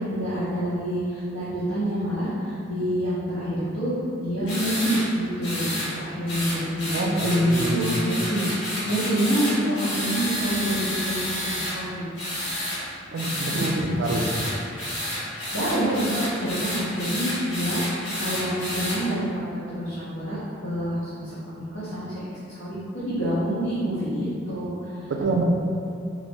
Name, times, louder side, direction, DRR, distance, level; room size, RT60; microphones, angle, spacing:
voice 1, 0.0-12.0 13.5-14.1 15.5-19.4 19.7-21.4 21.7-25.1, equal, 85° left, -12 dB, 0.8 m, -27 dB
sound 1, 4.5-5.0 5.4-5.9 6.3-11.7 12.1-12.8 13.1-13.7 14.0-19.0, left 1 dB, 65° left, 1.2 m, -30 dB
voice 2, 6.9-8.0 13.1-14.3 25.1-25.4, right 2 dB, 60° right, 2 dB, 0.3 m, -26 dB
3.0 x 2.5 x 3.3 m, 2.5 s
head